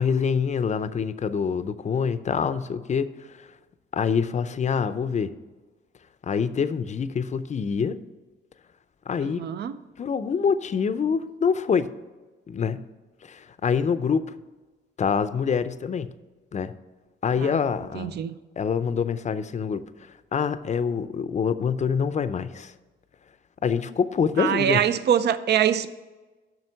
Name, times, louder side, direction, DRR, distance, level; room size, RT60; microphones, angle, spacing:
voice 1, 0.0-3.1 3.9-5.3 6.2-8.0 9.1-9.5 10.0-11.9 12.5-12.8 13.3-14.3 15.0-16.1 16.5-16.7 17.2-18.2 18.6-19.8 20.3-22.7 23.6-24.8, left 6 dB, 35° left, 0.5 m, -25 dB
voice 2, 9.2-9.8 17.4-17.6 17.9-18.3 24.4-25.9, right 9 dB, 55° right, 0.5 m, -24 dB
7.7 x 5.8 x 5.7 m
cardioid pair, 90°, 20 cm